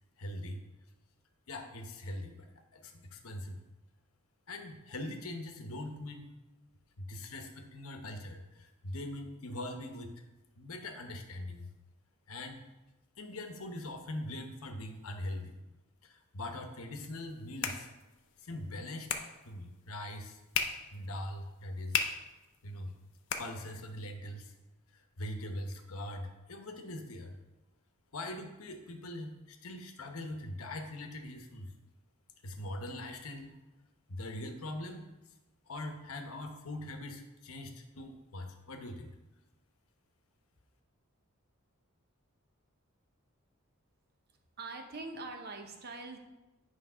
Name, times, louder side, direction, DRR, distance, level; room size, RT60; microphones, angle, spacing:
voice 1, 0.2-0.6 1.5-3.6 4.5-6.3 7.0-10.1 10.6-11.7 12.3-12.6 13.2-15.6 16.0-17.9 18.4-19.1 19.4-22.0 22.6-22.9 23.4-24.5 25.2-27.4 28.1-31.7 32.4-33.6 34.1-35.1 35.7-39.1, left 1 dB, 75° left, 5 dB, 0.9 m, -42 dB
sound 1, 17.1-24.1, left 7 dB, 55° left, 0.6 m, -39 dB
voice 2, 44.6-46.2, right 3 dB, 45° right, 3 dB, 0.8 m, -43 dB
9.7 x 3.3 x 5.5 m, 1.1 s
head